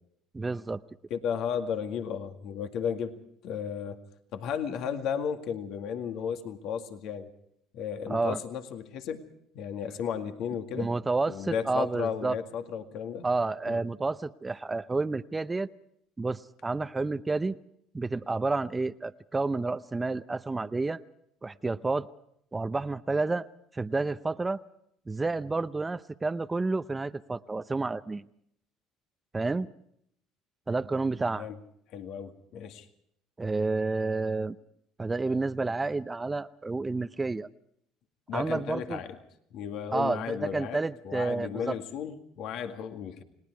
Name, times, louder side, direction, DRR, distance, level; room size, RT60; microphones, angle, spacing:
voice 1, 0.3-0.8 8.1-8.4 10.8-12.4 13.2-15.7 16.2-17.6 17.9-21.0 21.4-22.1 22.5-23.5 23.7-24.6 25.1-28.2 29.3-29.7 30.7-31.5 33.4-34.6 35.0-37.5 38.3-39.0 39.9-41.8, right 3 dB, 20° right, 12 dB, 0.7 m, -30 dB
voice 2, 1.1-4.0 4.3-7.3 7.7-9.2 9.5-10.9 11.3-13.3 13.7-13.8 31.4-31.6 31.9-32.9 38.3-39.2 39.5-40.8 41.0-43.2, left 7 dB, 65° left, 7 dB, 2.1 m, -34 dB
30.0 x 19.0 x 4.7 m, 0.72 s
supercardioid pair, 90°, 0 cm